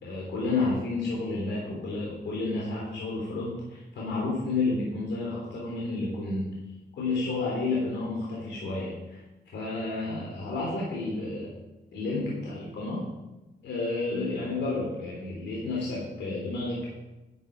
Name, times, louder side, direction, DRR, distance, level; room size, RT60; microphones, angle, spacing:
voice 1, 0.0-6.6 7.0-9.2 9.5-11.5 11.9-13.1 13.6-16.9, left 3 dB, 85° left, -4 dB, 3.4 m, -31 dB
11.0 x 10.0 x 5.3 m, 1.0 s
cardioid pair, 100°, 18 cm